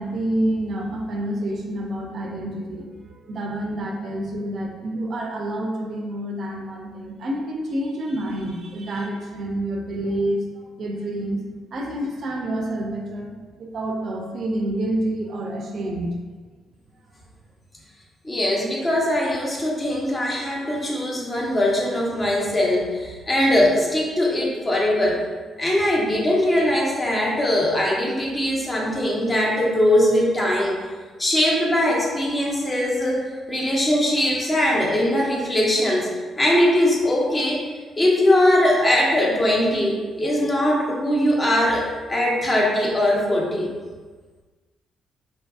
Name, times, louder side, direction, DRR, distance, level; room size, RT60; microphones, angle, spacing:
voice 1, 0.0-11.4 11.7-16.1, right 1 dB, 60° right, 0 dB, 0.4 m, -28 dB
voice 2, 18.2-25.2 25.6-30.8 31.2-37.6 38.0-43.7, left 1 dB, 25° left, -3 dB, 0.6 m, -21 dB
2.6 x 2.5 x 2.3 m, 1.4 s
cardioid pair, 90°, 0 cm